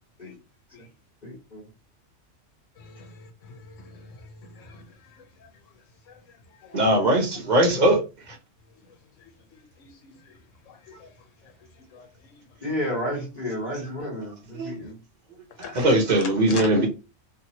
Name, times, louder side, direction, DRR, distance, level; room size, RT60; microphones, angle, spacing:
voice 1, 1.2-1.6 12.6-15.0 16.3-16.9, left 1 dB, 40° left, 1.4 m, -32 dB
voice 2, 2.8-6.8 8.8-12.6 14.8-14.9 15.5-15.8 16.5-16.7, left 5 dB, 80° left, 1.1 m, -45 dB
voice 3, 6.7-8.0 8.3-8.4 14.6-14.7 15.6-16.9, right 1 dB, 40° right, 0.8 m, -20 dB
2.9 x 2.6 x 2.8 m
omnidirectional pair, 1.3 m